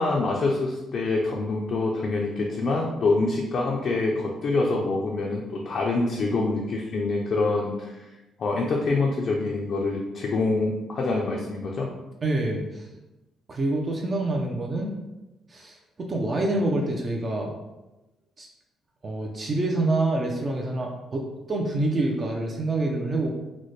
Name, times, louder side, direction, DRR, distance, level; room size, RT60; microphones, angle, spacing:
voice 1, 0.0-8.1 8.4-11.9, left 3 dB, 40° left, -2 dB, 0.4 m, -25 dB
voice 2, 12.2-12.9 13.5-14.9 15.5-17.5 18.4-18.5 19.0-23.3, right 2 dB, 30° right, 0 dB, 0.4 m, -27 dB
3.9 x 2.1 x 3.1 m, 1.0 s
cardioid pair, 160°, 0 cm